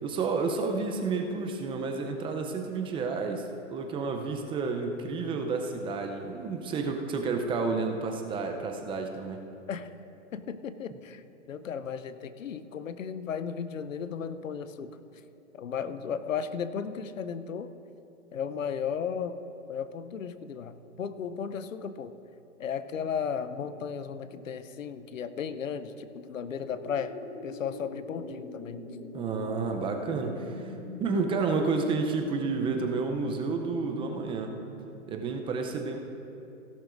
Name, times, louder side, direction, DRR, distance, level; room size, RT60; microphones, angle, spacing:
voice 1, 0.0-9.4 29.1-30.7 31.0-34.5 35.1-36.0, right 4 dB, 15° right, 4 dB, 0.6 m, -30 dB
voice 2, 10.3-15.0 15.5-17.7 18.3-19.4 19.7-22.1 22.6-27.1 27.4-28.8, left 7 dB, 80° left, 12 dB, 0.8 m, -35 dB
sound 1, 26.6-35.2, left 2 dB, 40° left, 2.1 m, -43 dB
16.5 x 11.5 x 2.6 m, 2.8 s
hypercardioid pair, 125°, 39 cm